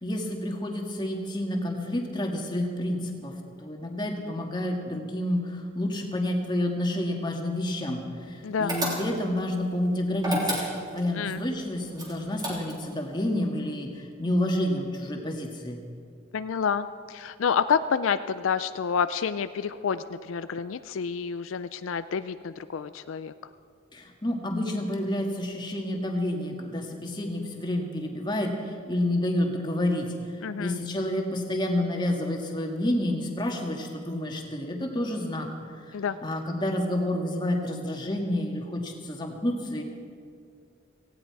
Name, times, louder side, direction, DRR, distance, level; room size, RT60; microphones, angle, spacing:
voice 1, 0.0-3.3 3.6-10.6 10.9-15.8 23.9-35.5 35.8-36.0 36.2-39.8, left 1 dB, 20° left, 2 dB, 1.7 m, -29 dB
voice 2, 8.4-8.7 11.1-11.4 16.3-23.3 30.4-30.8 35.9-36.2, left 6 dB, 80° left, 12 dB, 0.4 m, -28 dB
sound 1, 8.7-9.4 10.2-11.1 12.0-12.9, right 1 dB, 20° right, 3.1 m, -30 dB
18.0 x 16.0 x 4.7 m, 2.3 s
head